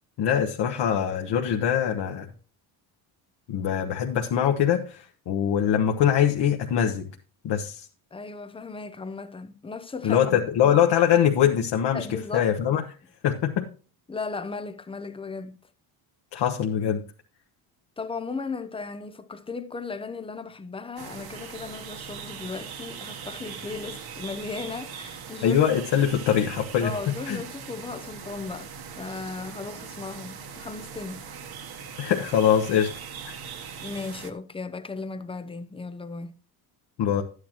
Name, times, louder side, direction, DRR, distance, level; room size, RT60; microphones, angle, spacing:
voice 1, 0.2-2.3 3.5-7.1 7.4-7.9 10.0-12.8 13.2-13.7 16.3-17.0 25.4-27.4 32.0-32.9 33.3-33.4 37.0-37.2, left 9 dB, 55° left, 1.2 m, -23 dB
voice 2, 8.1-10.8 11.9-12.5 14.1-15.6 18.0-25.6 26.8-31.2 33.8-36.3, left 4 dB, 10° left, 0.5 m, -36 dB
sound 1, 21.0-34.3, right 6 dB, 45° right, 1.3 m, -40 dB
12.0 x 9.7 x 3.0 m
cardioid pair, 145°, 50 cm